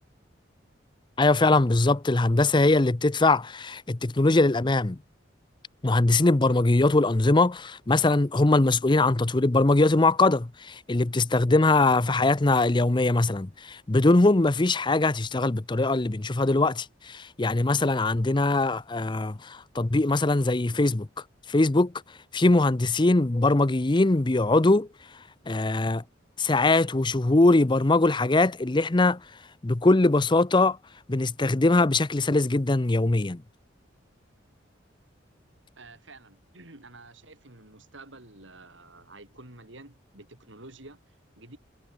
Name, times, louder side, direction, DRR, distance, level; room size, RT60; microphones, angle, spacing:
voice 1, 1.2-5.0 5.8-21.1 21.5-21.9 22.3-24.9 25.5-26.0 26.4-29.2 29.6-30.8 31.1-33.4, left 2 dB, 25° left, 0.6 m, -22 dB
voice 2, 35.8-41.0 41.4-41.6, right 2 dB, 75° right, 5.2 m, -49 dB
head